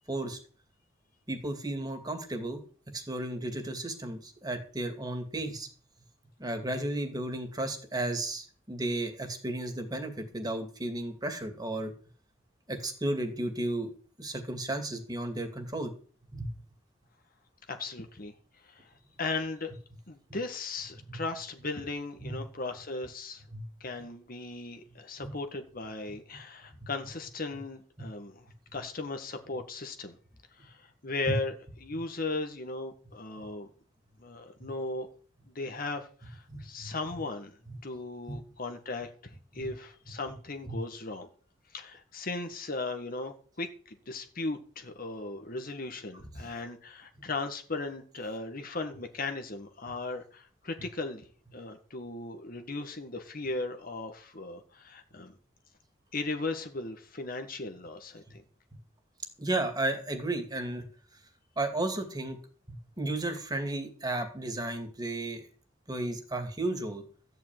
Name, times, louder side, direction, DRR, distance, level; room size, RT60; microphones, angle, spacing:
voice 1, 0.1-0.4 1.3-2.6 2.9-5.7 6.4-11.9 12.7-13.9 14.2-15.9 16.3-16.5 22.2-22.4 23.5-23.6 25.2-25.3 26.8-26.9 31.3-31.4 36.5-36.9 38.3-38.4 39.6-39.7 40.7-40.8 59.4-60.9 61.6-62.4 62.7-65.5 65.9-67.0, right 2 dB, 20° right, 6 dB, 2.4 m, -33 dB
voice 2, 17.7-18.3 18.6-19.7 20.1-23.4 23.8-30.2 30.6-33.7 34.2-35.1 35.4-41.3 41.7-51.3 51.5-55.4 56.1-58.4, left 3 dB, 50° left, 5 dB, 1.6 m, -37 dB
14.0 x 5.7 x 9.1 m, 0.41 s
head